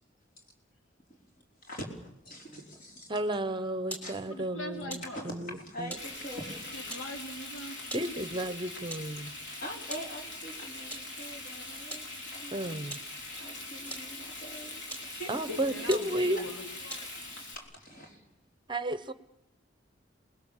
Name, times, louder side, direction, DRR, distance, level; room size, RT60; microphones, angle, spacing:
voice 1, 1.6-3.1 4.0-4.2 5.1-6.8 9.6-12.8 13.4-16.1 17.3-18.2, equal, 45° left, 0 dB, 4.9 m, -44 dB
voice 2, 3.1-5.9 7.9-9.3 12.5-13.0 15.3-16.4 18.7-19.1, right 1 dB, 25° right, 13 dB, 0.9 m, -32 dB
sound 1, 3.9-4.1 4.9-5.1 5.9-6.1 6.9-7.1 7.9-8.1 8.9-9.1 9.9-10.1 10.9-11.1 11.9-12.1 12.9-13.1 13.9-14.1 14.9-15.1 15.6-15.7 15.9-16.1 16.9-17.2, right 1 dB, 10° left, 4.0 m, -41 dB
voice 3, 4.3-5.3 6.7-7.8 15.7-17.1, equal, 90° left, 4 dB, 2.8 m, -42 dB
Frying (food), 6.0-17.6, left 2 dB, 70° left, 4.7 m, -42 dB
28.0 x 20.5 x 7.3 m, 0.79 s
head